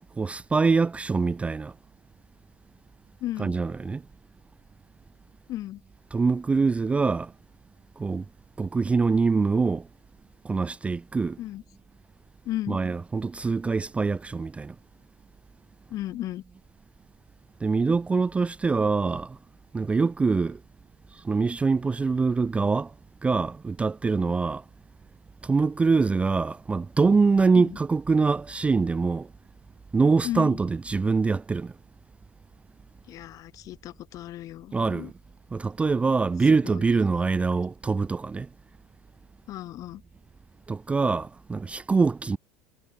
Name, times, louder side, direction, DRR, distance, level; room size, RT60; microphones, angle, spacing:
voice 1, 0.2-1.7 3.4-4.0 6.1-7.3 8.0-8.2 8.6-9.9 10.4-11.4 12.7-14.7 17.6-19.4 19.7-20.6 21.1-22.9 23.2-24.6 25.4-29.3 29.9-31.7 34.7-35.1 35.5-38.5 40.7-42.4, right 4 dB, 15° right, 0.4 m, -24 dB
voice 2, 3.2-3.5 5.5-5.8 11.4-11.6 12.5-12.8 15.9-16.4 27.6-27.8 30.2-30.6 33.1-35.1 36.6-36.7 39.5-40.0, left 14 dB, 45° left, 1.9 m, -34 dB
figure-of-eight pair, 75°, 8 cm